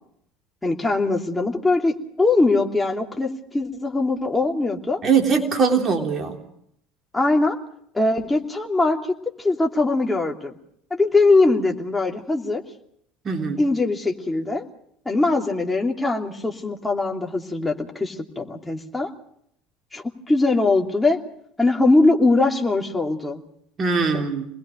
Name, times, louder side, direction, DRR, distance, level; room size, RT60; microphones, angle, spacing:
voice 1, 0.6-5.0 7.1-7.6 7.9-10.5 10.9-12.6 13.6-14.7 15.0-19.1 19.9-21.2 21.6-23.4 24.1-24.2, left 2 dB, 10° left, 1 dB, 3.0 m, -21 dB
voice 2, 5.0-6.4 13.2-13.6 23.8-24.5, right 5 dB, 35° right, 3 dB, 3.5 m, -21 dB
27.5 x 20.5 x 5.1 m, 0.70 s
figure-of-eight pair, 65°, 0 cm